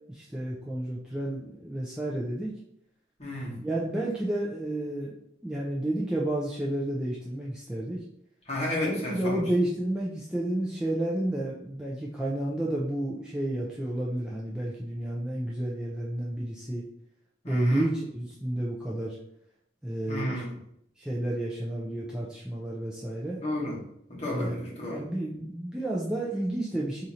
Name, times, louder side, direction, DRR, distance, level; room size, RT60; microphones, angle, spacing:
voice 1, 0.1-2.5 3.6-5.1 5.4-8.0 8.8-16.8 17.5-19.2 19.8-20.4 21.0-23.4 24.3-27.1, right 1 dB, 5° right, -5 dB, 0.3 m, -31 dB
voice 2, 3.2-3.7 8.5-9.4 17.4-17.9 20.1-20.5 23.4-23.8 24.1-25.0, left 1 dB, 35° left, -5 dB, 1.0 m, -32 dB
2.7 x 2.5 x 4.2 m, 0.73 s
head